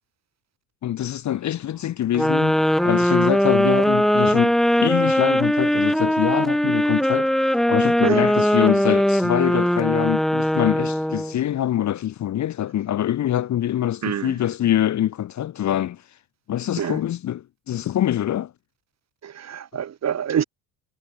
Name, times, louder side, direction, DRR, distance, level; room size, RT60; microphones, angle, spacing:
voice 1, 0.8-2.6 2.8-16.0 16.5-18.5, left 11 dB, 40° left, 0.8 m, -24 dB
sound 1, 2.1-11.4, equal, ahead, 0.4 m, -20 dB
voice 2, 14.0-14.4 16.8-17.0 19.2-20.4, right 9 dB, 40° right, 1.4 m, -26 dB
supercardioid pair, 90°, 43 cm